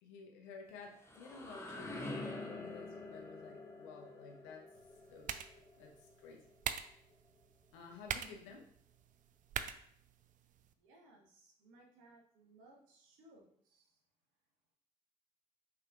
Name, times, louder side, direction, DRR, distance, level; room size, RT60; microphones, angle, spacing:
voice 1, 0.0-4.7 5.1-5.3 5.8-6.5 7.7-8.7, left 5 dB, 70° left, 2 dB, 0.7 m, -53 dB
sound 1, 0.7-6.5, left 2 dB, 10° left, 0.9 m, -47 dB
sound 2, 4.7-10.7, right 8 dB, 40° right, 0.4 m, -45 dB
voice 2, 10.8-13.9, right 2 dB, 65° right, 0 dB, 0.9 m, -63 dB
5.7 x 3.5 x 2.4 m, 0.64 s
figure-of-eight pair, 40°, 21 cm